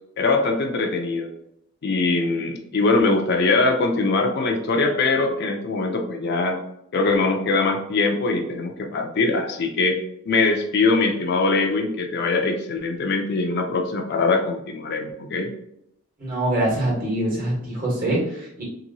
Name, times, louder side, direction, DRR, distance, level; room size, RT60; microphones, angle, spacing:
voice 1, 0.2-1.3 1.8-6.6 6.9-10.0 10.3-15.5, left 3 dB, 50° left, 3 dB, 0.4 m, -22 dB
voice 2, 16.2-18.6, right 1 dB, 40° right, -4 dB, 1.3 m, -24 dB
2.9 x 2.6 x 2.6 m, 0.77 s
head